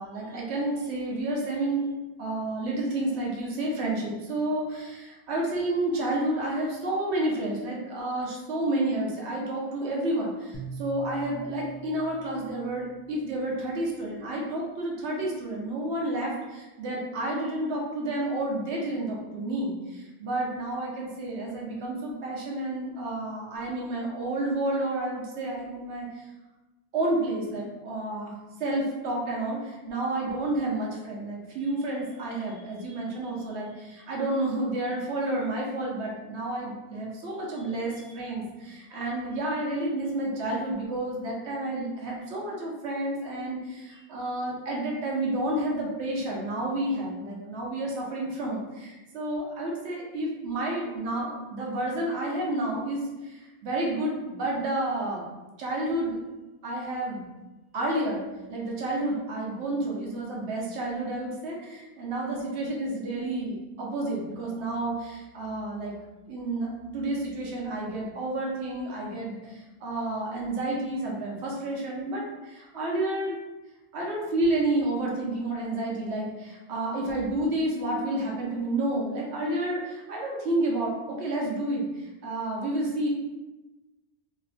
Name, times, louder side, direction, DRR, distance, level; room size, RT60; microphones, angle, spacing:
voice 1, 0.0-1.9 2.2-26.3 26.9-28.3 28.6-55.3 55.6-56.2 56.6-57.3 57.7-66.0 66.3-73.4 73.9-83.1, right 1 dB, 85° right, -3 dB, 1.0 m, -30 dB
sound 1, 10.5-13.8, right 3 dB, 40° left, 0.4 m, -43 dB
3.3 x 2.7 x 2.4 m, 1.1 s
omnidirectional pair, 1.1 m